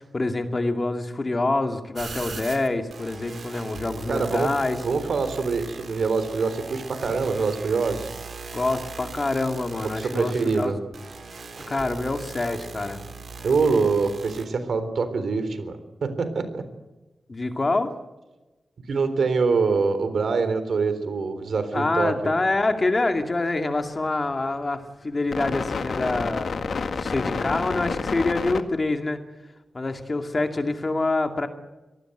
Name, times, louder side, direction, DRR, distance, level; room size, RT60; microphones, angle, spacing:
voice 1, 0.0-4.8 8.5-10.7 11.7-13.0 17.3-18.0 21.7-29.2 29.7-31.5, left 2 dB, 30° left, 6 dB, 2.3 m, -26 dB
sound 1, 1.9-14.4, right 4 dB, 60° right, 3.8 m, -39 dB
voice 2, 4.1-4.5 4.8-8.1 9.8-10.8 13.4-16.6 18.9-22.3, right 4 dB, 75° right, 11 dB, 3.7 m, -24 dB
sound 2, 22.4-23.0 24.1-24.2 25.3-28.6, left 5 dB, 75° left, 1.8 m, -29 dB
25.5 x 19.0 x 7.9 m, 1.1 s
wide cardioid pair, 160°, 0 cm